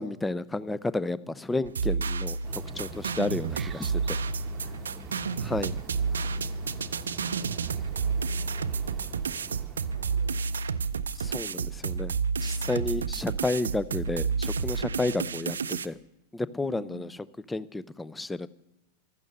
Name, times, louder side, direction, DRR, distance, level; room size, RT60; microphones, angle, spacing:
voice 1, 0.0-4.2 5.4-5.7 11.1-12.1 12.4-16.0 16.3-17.1 17.5-18.5, left 2 dB, 10° left, 19 dB, 0.5 m, -31 dB
sound 1, 1.6-15.9, right 5 dB, 70° right, 0.5 m, -30 dB
sound 2, 2.4-10.9, right 5 dB, 20° right, 1.0 m, -46 dB
voice 2, 4.6-9.3 9.9-11.1 16.6-17.1, left 1 dB, 70° left, 2 dB, 2.4 m, -51 dB
15.0 x 12.5 x 6.7 m, 0.85 s
figure-of-eight pair, 90°, 0 cm